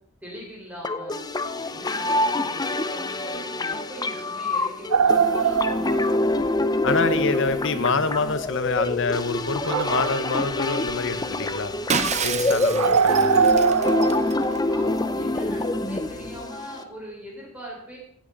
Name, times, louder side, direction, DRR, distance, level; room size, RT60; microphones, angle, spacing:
voice 1, 0.2-1.2 1.6-6.8 12.7-13.0 14.3-18.0, equal, 5° right, -4 dB, 4.7 m, -41 dB
sound 1, 0.8-16.8, left 2 dB, 20° left, 0.6 m, -26 dB
sound 2, 4.9-6.6 6.9-7.0 7.5-7.6 8.3-8.4 9.5-10.5 10.8-11.1 11.5-11.6 12.0-12.1 12.2-12.3 12.7-15.8 16.1-16.4, right 6 dB, 85° right, 0.6 m, -22 dB
voice 2, 6.8-11.7 12.2-13.5, left 4 dB, 60° left, 11 dB, 1.0 m, -26 dB
Shatter, 11.9-14.6, right 6 dB, 30° right, 0.7 m, -29 dB
16.0 x 9.4 x 4.0 m, 0.66 s
head